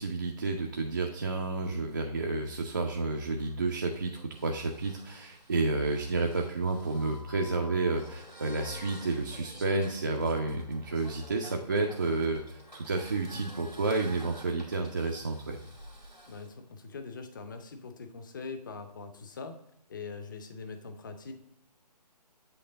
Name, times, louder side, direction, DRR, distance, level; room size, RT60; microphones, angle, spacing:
voice 1, 0.0-15.6, right 3 dB, 30° right, 1 dB, 0.4 m, -31 dB
sound 1, 3.1-16.5, right 1 dB, 90° right, 1.9 m, -51 dB
voice 2, 16.3-19.6 19.9-21.3, left 4 dB, 30° left, 7 dB, 0.6 m, -42 dB
7.9 x 3.2 x 3.8 m, 0.78 s
figure-of-eight pair, 145°, 21 cm